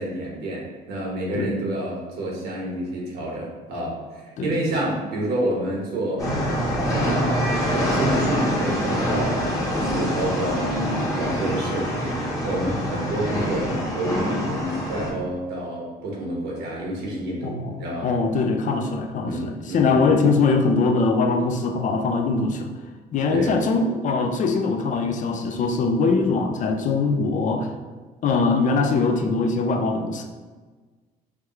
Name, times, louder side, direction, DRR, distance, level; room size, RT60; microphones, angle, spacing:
voice 1, 0.0-6.3 6.9-10.7 11.2-18.1 19.3-20.1 23.3-23.6, right 1 dB, 75° right, -3 dB, 1.2 m, -29 dB
sound 1, 6.2-15.1, equal, 20° left, 1.0 m, -25 dB
voice 2, 17.4-22.7 23.1-27.7 28.2-30.2, left 4 dB, 50° left, 4 dB, 0.4 m, -22 dB
4.9 x 2.3 x 3.1 m, 1.4 s
cardioid pair, 110°, 17 cm